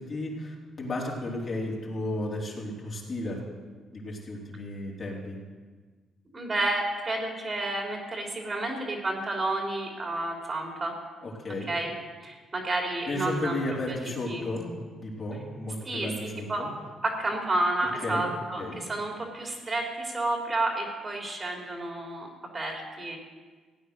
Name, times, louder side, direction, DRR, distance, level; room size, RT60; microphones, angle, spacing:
voice 1, 0.0-3.4 3.9-5.4 11.2-11.7 13.1-14.7 15.0-16.7 18.0-18.3 18.6-18.8, left 1 dB, 45° left, -4 dB, 3.9 m, -33 dB
voice 2, 6.3-10.9 11.7-12.0 12.2-13.6 14.3-14.5 15.8-16.7 17.0-23.2, right 2 dB, 30° right, 0 dB, 3.3 m, -30 dB
16.0 x 9.2 x 6.5 m, 1.4 s
cardioid pair, 90°, 0 cm